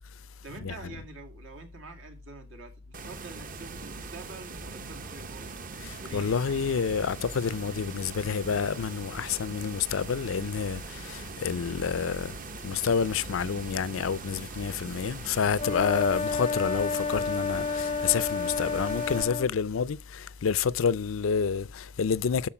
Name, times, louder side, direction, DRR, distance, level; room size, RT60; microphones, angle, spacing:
voice 1, 0.4-5.6 6.0-6.3, right 3 dB, 85° right, 2.3 m, -46 dB
sound 1, 2.9-19.2, right 4 dB, 45° right, 0.7 m, -41 dB
voice 2, 5.8-12.4 12.6-22.5, left 6 dB, 85° left, 0.5 m, -29 dB
sound 2, 15.5-19.5, left 4 dB, 30° left, 0.4 m, -30 dB
13.0 x 4.6 x 6.0 m
head